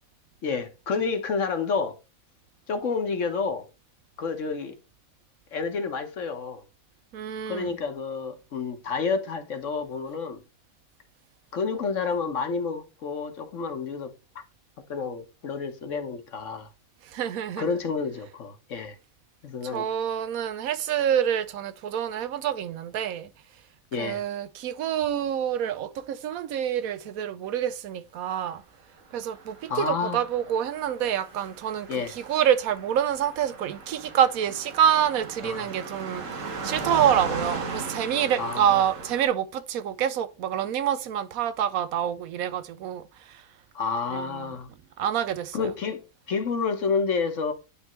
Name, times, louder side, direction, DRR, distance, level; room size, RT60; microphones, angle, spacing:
voice 1, 0.4-1.9 2.7-3.7 4.2-4.7 5.5-6.6 7.5-10.4 11.5-14.1 14.9-16.7 17.6-18.9 19.4-19.9 23.9-24.2 29.7-30.2 31.9-32.1 35.4-35.7 38.4-38.8 43.7-44.7 45.5-46.0 46.3-47.5, left 5 dB, 65° left, 1.4 m, -29 dB
voice 2, 7.1-7.7 17.0-17.7 19.7-23.3 24.0-28.6 29.1-43.4 44.1-44.5 45.0-45.7, right 9 dB, 85° right, 1.1 m, -27 dB
Car passing by, 29.3-39.3, right 3 dB, 65° right, 1.6 m, -37 dB
10.0 x 3.4 x 3.1 m
omnidirectional pair, 1.4 m